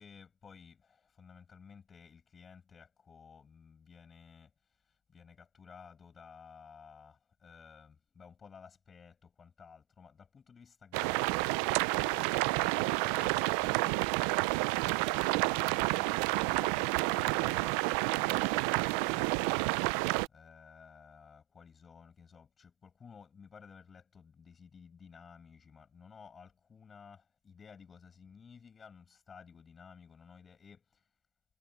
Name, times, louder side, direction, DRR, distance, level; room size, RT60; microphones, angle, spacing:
voice 1, 0.0-4.5 4.8-31.1, left 6 dB, 35° left, 7.0 m, -55 dB
sound 1, 10.9-20.3, right 24 dB, 85° right, 0.4 m, -30 dB
supercardioid pair, 100°, 0 cm